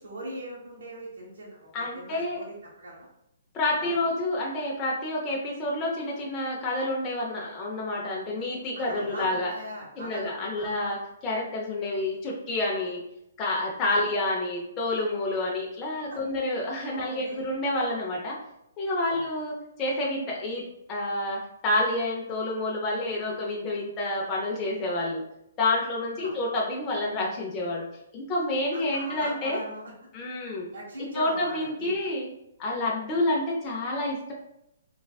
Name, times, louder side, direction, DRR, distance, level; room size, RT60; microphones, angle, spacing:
voice 1, 0.0-3.1 3.8-3.9 8.8-10.7 13.9-14.1 16.1-16.2 16.9-17.4 19.1-19.2 26.1-26.4 28.7-29.8 30.7-32.0, right 1 dB, 70° right, -4 dB, 0.9 m, -40 dB
voice 2, 1.7-2.4 3.5-9.5 10.0-13.0 13.4-18.4 18.8-19.5 19.8-25.2 25.6-27.9 28.1-29.6 30.1-30.7 31.1-32.3 32.6-34.3, left 2 dB, 20° left, -3 dB, 0.4 m, -29 dB
3.2 x 2.3 x 2.2 m, 0.82 s
hypercardioid pair, 155°, 0 cm